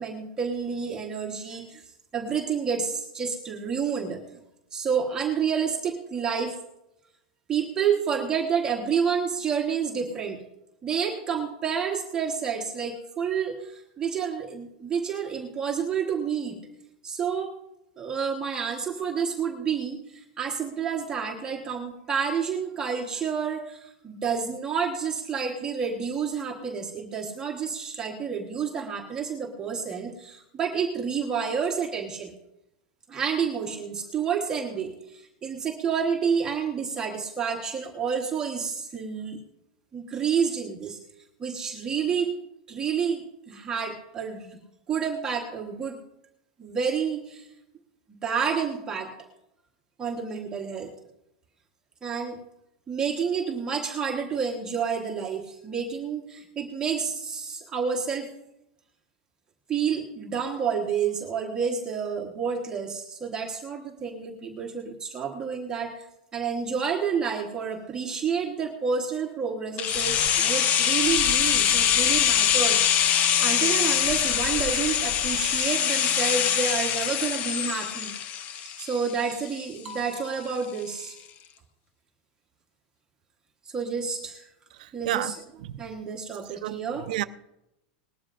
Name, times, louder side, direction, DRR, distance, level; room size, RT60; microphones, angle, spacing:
voice 1, 0.0-1.8 2.1-4.4 4.7-6.6 7.5-10.4 10.8-16.6 17.0-17.5 18.0-32.3 33.1-39.4 39.9-41.0 41.4-42.3 42.7-44.6 44.9-46.0 46.6-47.5 48.2-49.1 50.0-50.9 52.0-52.4 52.9-58.3 59.7-66.1 66.3-78.1 78.8-81.2 83.6-84.4 84.9-85.3 85.8-87.0, right 6 dB, 15° right, 1.2 m, -29 dB
sound 1, 69.8-79.6 79.9-80.0, left 9 dB, 30° left, 0.5 m, -23 dB
voice 2, 84.7-85.8 86.4-87.2, right 14 dB, 65° right, 0.5 m, -32 dB
19.5 x 13.0 x 2.5 m
supercardioid pair, 160°, 5 cm